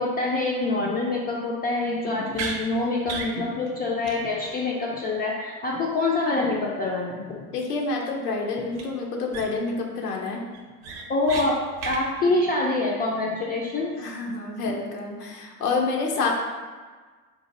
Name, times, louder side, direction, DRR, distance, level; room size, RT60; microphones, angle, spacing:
voice 1, 0.0-7.4 11.1-11.6 11.8-13.9, left 2 dB, 20° left, -4 dB, 0.3 m, -25 dB
sound 1, 2.3-2.6 3.1-3.3 3.7-3.8 4.0-4.2 4.4-4.6 8.7-8.8 9.3-9.7 10.1-10.2 10.5-11.5 11.8-12.0, right 5 dB, 55° right, 0.7 m, -33 dB
voice 2, 7.5-10.4 14.0-16.3, left 3 dB, 85° left, 0 dB, 0.7 m, -28 dB
4.0 x 2.5 x 2.5 m, 1.4 s
hypercardioid pair, 70°, 46 cm